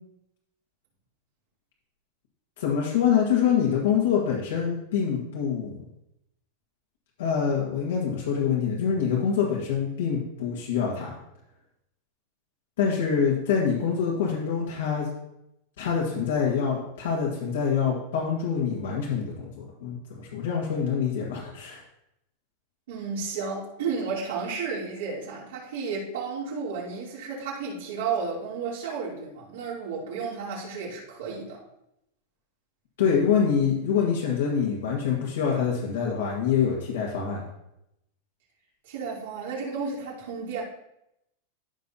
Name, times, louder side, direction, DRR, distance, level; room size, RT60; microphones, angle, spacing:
voice 1, 2.6-5.9 7.2-11.2 12.8-15.1 15.8-21.8 33.0-37.4, left 7 dB, 85° left, -3 dB, 1.8 m, -25 dB
voice 2, 22.9-31.6 38.8-40.6, right 5 dB, 80° right, -6 dB, 3.0 m, -32 dB
13.5 x 5.3 x 2.8 m, 0.82 s
supercardioid pair, 165°, 0 cm